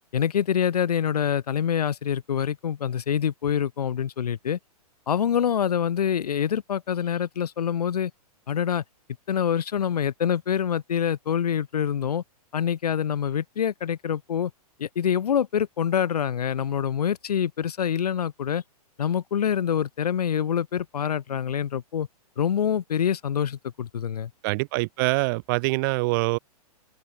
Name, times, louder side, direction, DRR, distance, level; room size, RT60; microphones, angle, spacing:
voice 1, 0.1-4.6 5.1-8.1 8.5-8.8 9.3-12.2 12.5-14.5 14.8-18.6 19.0-22.1 22.4-24.3, left 8 dB, 80° left, 1.4 m, -25 dB
voice 2, 24.4-26.4, right 25 dB, 35° right, 0.4 m, -24 dB
open air
hypercardioid pair, 130°, 20 cm